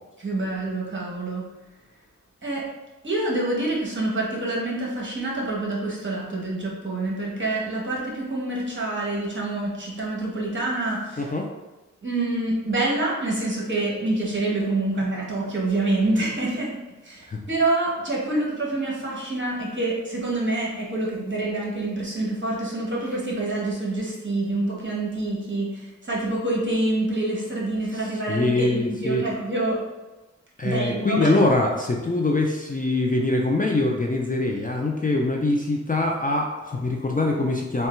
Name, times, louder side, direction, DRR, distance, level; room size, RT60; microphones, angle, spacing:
voice 1, 0.2-1.4 2.4-2.6 3.0-11.3 12.0-16.7 17.0-29.8 30.6-31.3, right 2 dB, 40° right, -4 dB, 1.2 m, -26 dB
voice 2, 11.2-11.5 17.3-17.4 28.3-29.3 30.6-37.9, left 2 dB, 30° left, 0 dB, 0.4 m, -23 dB
3.6 x 2.3 x 4.3 m, 1.1 s
wide cardioid pair, 85°, 29 cm